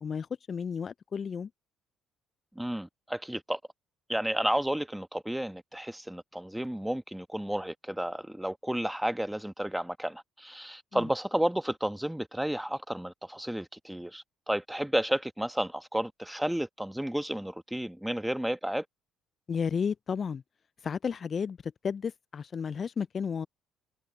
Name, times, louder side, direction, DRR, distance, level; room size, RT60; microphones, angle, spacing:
voice 1, 0.0-1.5 10.9-11.0 19.5-20.4 20.8-23.5, left 6 dB, 45° left, 0.3 m, -33 dB
voice 2, 2.5-3.6 4.1-18.8, right 1 dB, 5° right, 1.6 m, -32 dB
hypercardioid pair, 55°, 0 cm